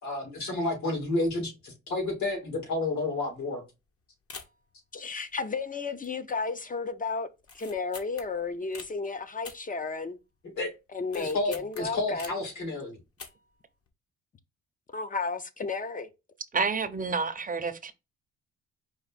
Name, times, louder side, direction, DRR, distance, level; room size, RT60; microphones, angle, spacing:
voice 1, 0.0-3.6 10.5-10.7 11.1-13.0, left 2 dB, 70° left, 3.2 m, -30 dB
sound 1, 3.3-3.6 3.8-3.9 4.3-4.7 5.2-5.7 6.0-6.4 6.7-6.8 7.4-8.9 9.4-10.4 10.7-12.5 13.0-13.6 13.9-14.0, left 4 dB, 50° left, 1.3 m, -46 dB
voice 2, 4.9-7.3 7.5-10.2 10.9-12.4 14.9-16.1, left 4 dB, 25° left, 0.7 m, -33 dB
voice 3, 16.5-17.9, right 5 dB, 30° right, 0.8 m, -29 dB
5.0 x 2.5 x 4.1 m
cardioid pair, 90°, 30 cm